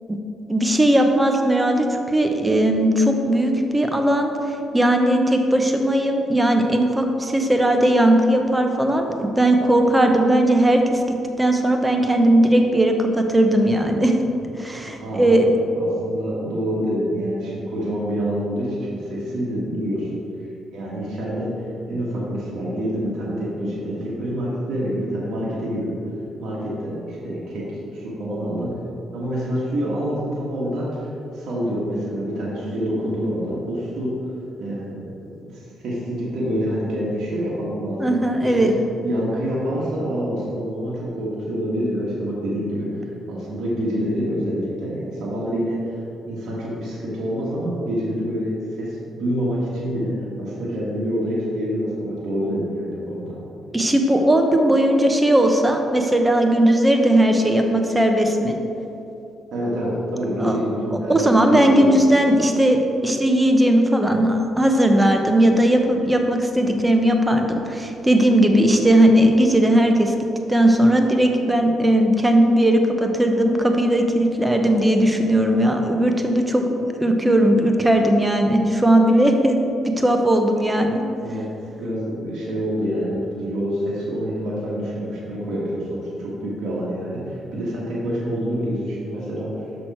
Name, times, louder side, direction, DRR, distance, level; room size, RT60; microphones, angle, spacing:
voice 1, 0.5-4.3 4.7-11.0 11.4-14.2 14.6-15.5 38.0-38.7 53.7-58.6 60.4-60.6 60.9-62.8 63.0-70.1 70.5-81.0, right 1 dB, 10° right, 4 dB, 0.8 m, -18 dB
voice 2, 15.0-15.3 15.7-20.1 20.7-26.0 26.4-27.6 27.9-28.7 29.1-31.0 31.3-34.1 34.6-35.1 35.4-38.7 39.0-45.8 46.3-53.3 59.5-61.9 81.2-81.5 81.8-89.5, equal, 70° right, -7 dB, 1.7 m, -27 dB
6.3 x 6.0 x 4.4 m, 2.8 s
cardioid pair, 90°, 0 cm